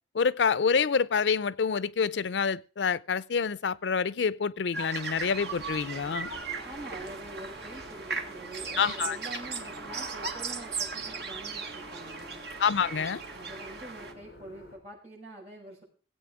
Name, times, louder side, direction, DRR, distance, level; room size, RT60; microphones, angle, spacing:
voice 1, 0.1-6.3 8.8-9.2 12.6-13.2, left 6 dB, 85° left, 0.5 m, -27 dB
sound 1, 4.7-14.1, right 4 dB, 65° right, 1.8 m, -37 dB
sound 2, 5.1-14.8, equal, 60° left, 5.8 m, -50 dB
voice 2, 6.6-12.4 12.9-15.8, right 2 dB, 35° right, 6.5 m, -45 dB
sound 3, 6.9-7.3 8.2-8.7 9.7-10.3 11.1-11.6 12.4-12.6, equal, 5° right, 3.3 m, -60 dB
16.5 x 8.5 x 4.9 m
head